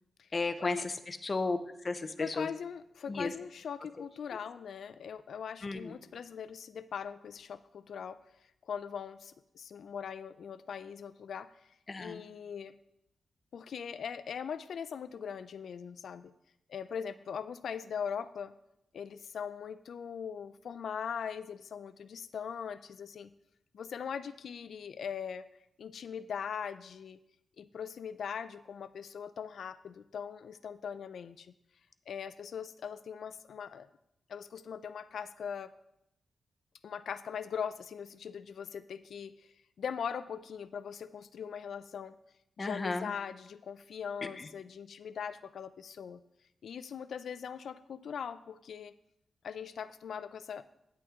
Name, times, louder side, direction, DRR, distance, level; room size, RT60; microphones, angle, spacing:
voice 1, 0.3-1.6 1.8-2.5 3.1-3.3 5.6-5.9 11.9-12.2 42.6-43.1 44.4-44.5, left 3 dB, 35° left, 9 dB, 0.6 m, -34 dB
voice 2, 2.2-8.2 8.7-11.5 12.0-12.8 13.5-16.3 16.7-18.5 18.9-23.3 23.7-25.5 25.8-27.2 27.6-31.5 32.1-33.9 34.3-35.7 36.8-42.2 42.6-46.2 46.6-48.9 49.4-50.6, left 7 dB, 75° left, 14 dB, 0.4 m, -41 dB
9.4 x 8.6 x 3.7 m, 0.81 s
wide cardioid pair, 120°, 0 cm